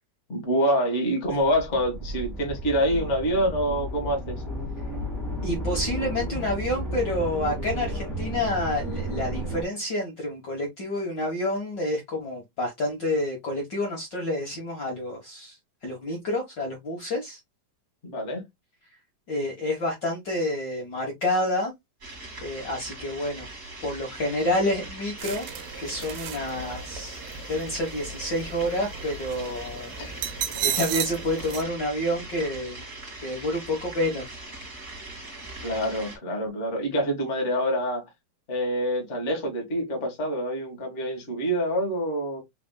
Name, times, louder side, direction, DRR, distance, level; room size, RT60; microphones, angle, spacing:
voice 1, 0.3-4.3 18.0-18.4 30.0-30.1 35.6-38.0 38.5-42.4, equal, 45° left, 0.8 m, -26 dB
sound 1, 1.4-9.6, right 1 dB, ahead, 0.5 m, -33 dB
voice 2, 5.4-15.5 15.8-17.4 19.3-21.7 22.4-23.5 23.8-25.5 25.8-27.2 27.5-29.9 30.6-32.8 33.2-34.4, left 1 dB, 85° left, 0.9 m, -28 dB
sound 2, 22.0-36.2, right 2 dB, 25° right, 2.3 m, -41 dB
sound 3, 25.2-31.6, right 9 dB, 80° right, 2.2 m, -34 dB
5.0 x 3.7 x 2.2 m
omnidirectional pair, 4.2 m